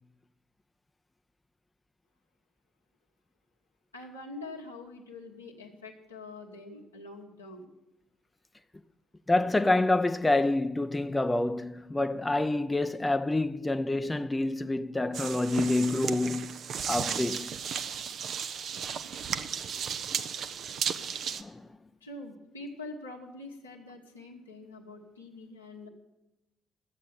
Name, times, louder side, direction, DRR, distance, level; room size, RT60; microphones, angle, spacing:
voice 1, 3.9-7.7 22.0-25.9, left 2 dB, 90° left, 1.4 m, -44 dB
voice 2, 9.3-16.5 16.9-17.5 21.3-21.7, left 2 dB, 15° left, 0.6 m, -27 dB
sound 1, 15.1-21.4, right 7 dB, 55° right, 0.7 m, -34 dB
13.0 x 8.5 x 8.8 m
figure-of-eight pair, 45°, 0 cm